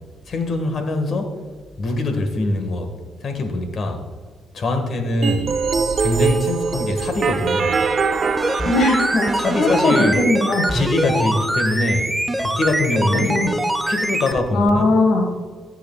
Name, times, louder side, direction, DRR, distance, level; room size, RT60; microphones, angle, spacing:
voice 1, 0.3-1.4 1.8-2.9 3.2-4.0 4.5-5.5 6.0-7.8 9.3-10.2 10.7-12.1 12.4-13.3 13.8-14.9, left 2 dB, 55° left, 6 dB, 1.5 m, -23 dB
sound 1, 5.2-10.2, right 5 dB, 50° right, 0.6 m, -23 dB
sound 2, 8.3-14.4 14.7-14.8, right 1 dB, 5° right, 0.6 m, -23 dB
voice 2, 8.6-9.3 9.6-10.7 13.3-13.5 14.5-15.3, left 2 dB, 75° left, 2 dB, 1.6 m, -18 dB
14.0 x 7.9 x 2.3 m, 1.5 s
cardioid pair, 90°, 0 cm